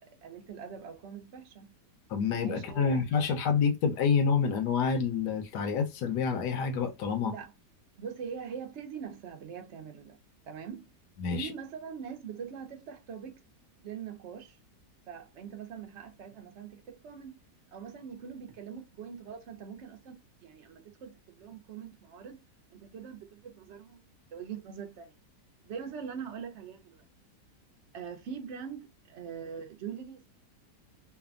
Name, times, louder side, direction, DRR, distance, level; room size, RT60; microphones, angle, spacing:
voice 1, 0.2-1.8 2.4-3.0 7.2-7.5 8.0-10.2 10.4-10.9 11.3-13.4 13.8-14.6 15.1-17.4 17.7-22.4 22.7-24.0 24.3-25.1 25.6-27.0 27.9-30.3, right 7 dB, 60° right, 0.7 m, -42 dB
voice 2, 2.1-7.3 11.2-11.5, left 6 dB, 80° left, 1.3 m, -28 dB
3.3 x 2.1 x 2.4 m
omnidirectional pair, 1.8 m